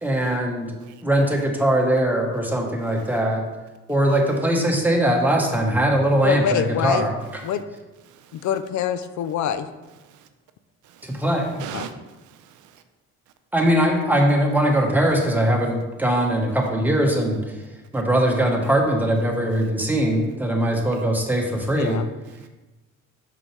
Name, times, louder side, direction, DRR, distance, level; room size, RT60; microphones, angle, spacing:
voice 1, 0.0-0.8 1.0-3.4 3.9-7.1 11.0-11.6 13.5-17.6 17.9-22.0, right 1 dB, 5° right, 0 dB, 1.2 m, -21 dB
voice 2, 6.2-7.1 7.4-7.6 8.3-9.7 11.7-11.9 21.7-22.1, left 9 dB, 70° left, 11 dB, 0.5 m, -25 dB
voice 3, 8.1-8.5 10.1-10.3 10.8-11.2 11.6-11.9 12.2-12.8 22.4-22.5, right 9 dB, 80° right, 9 dB, 0.6 m, -40 dB
6.1 x 5.8 x 3.2 m, 1.1 s
cardioid pair, 90°, 30 cm